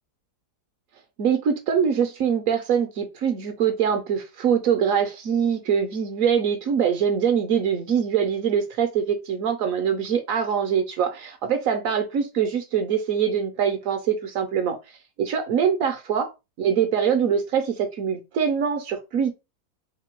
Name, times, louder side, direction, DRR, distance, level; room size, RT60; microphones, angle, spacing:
voice 1, 1.2-14.8 15.2-16.3 16.6-19.3, right 7 dB, 65° right, 0.9 m, -23 dB
3.6 x 2.2 x 4.4 m
omnidirectional pair, 1.9 m